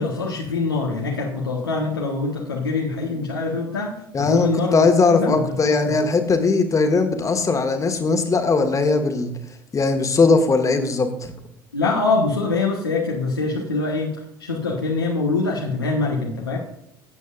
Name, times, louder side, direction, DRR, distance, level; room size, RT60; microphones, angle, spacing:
voice 1, 0.0-3.9 4.2-4.8 5.1-5.9 11.7-16.6, left 3 dB, 80° left, -3 dB, 1.3 m, -24 dB
voice 2, 4.1-9.3 9.7-11.3, left 4 dB, 25° left, 6 dB, 1.6 m, -19 dB
14.5 x 8.2 x 2.5 m, 0.79 s
figure-of-eight pair, 65°, 12 cm